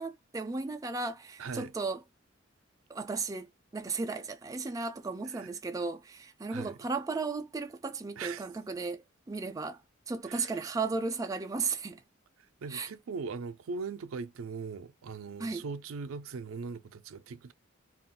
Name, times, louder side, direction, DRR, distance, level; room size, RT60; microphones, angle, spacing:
voice 1, 0.0-2.0 2.9-3.5 3.7-9.8 10.1-12.0 12.7-12.9 15.4-15.6, right 4 dB, 15° right, 0.3 m, -35 dB
voice 2, 1.4-1.7 5.3-5.5 6.5-6.9 8.2-8.4 10.2-10.7 12.6-17.5, right 4 dB, 90° right, 0.4 m, -40 dB
2.4 x 2.1 x 3.6 m
head